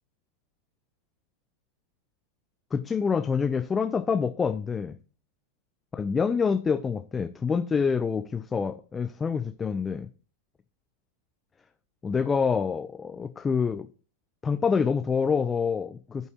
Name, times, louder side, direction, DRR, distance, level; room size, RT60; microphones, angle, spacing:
voice 1, 2.7-5.0 5.9-10.1 12.0-13.9 14.4-16.3, left 6 dB, 15° left, 0.5 m, -26 dB
14.5 x 5.5 x 3.0 m
figure-of-eight pair, 90°, 0 cm